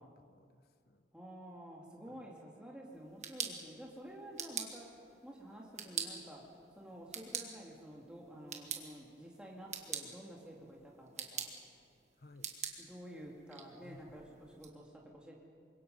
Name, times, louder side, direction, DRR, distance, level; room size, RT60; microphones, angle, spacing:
voice 1, 0.0-1.1 2.1-2.3 12.2-12.5 13.8-14.2, left 2 dB, 55° left, 9 dB, 1.0 m, -59 dB
voice 2, 1.1-4.9 5.2-6.5 6.8-11.5 12.8-15.3, equal, 5° right, -3 dB, 2.4 m, -51 dB
sound 1, 2.9-14.7, right 7 dB, 40° right, 1.7 m, -46 dB
25.5 x 22.0 x 5.5 m, 2.3 s
head